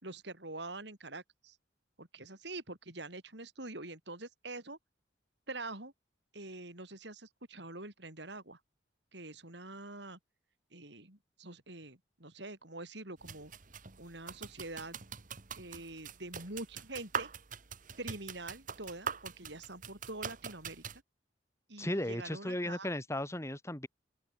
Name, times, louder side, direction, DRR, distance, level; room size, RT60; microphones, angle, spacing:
voice 1, 0.0-1.6 2.0-4.8 5.5-5.9 6.3-8.6 9.1-10.2 10.7-13.5 14.0-15.0 15.6-17.3 18.0-20.8 21.7-22.9, right 2 dB, 60° right, 5.5 m, -45 dB
sound 1, 13.2-21.0, right 6 dB, 45° right, 1.6 m, -43 dB
voice 2, 21.8-23.9, left 1 dB, 15° left, 2.7 m, -35 dB
head